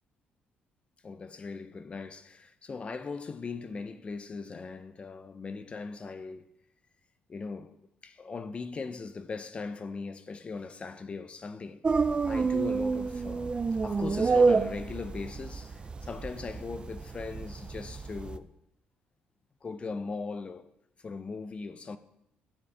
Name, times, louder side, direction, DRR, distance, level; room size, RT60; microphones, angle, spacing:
voice 1, 1.0-6.4 7.3-7.7 8.0-11.8 12.2-13.5 13.8-18.5 19.6-20.7 21.0-22.0, left 4 dB, 35° left, 0.5 m, -39 dB
sound 1, 11.8-18.4, right 4 dB, 30° right, 0.4 m, -28 dB
12.5 x 7.0 x 3.3 m
cardioid pair, 95°, 4 cm